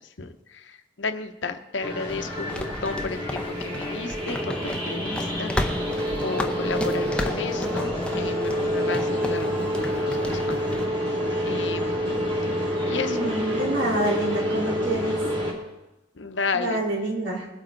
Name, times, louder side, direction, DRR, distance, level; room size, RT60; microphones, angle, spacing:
voice 1, 0.0-5.9 6.2-11.0 11.4-12.0 12.9-13.3 16.1-16.8, left 4 dB, 75° left, 8 dB, 0.9 m, -33 dB
sound 1, 1.8-15.5, equal, 25° right, 3.0 m, -27 dB
sound 2, 2.1-10.9, left 1 dB, 5° left, 0.6 m, -34 dB
voice 2, 13.1-15.2 16.5-17.5, right 2 dB, 70° right, -3 dB, 3.6 m, -27 dB
20.5 x 8.9 x 3.9 m, 1.0 s
head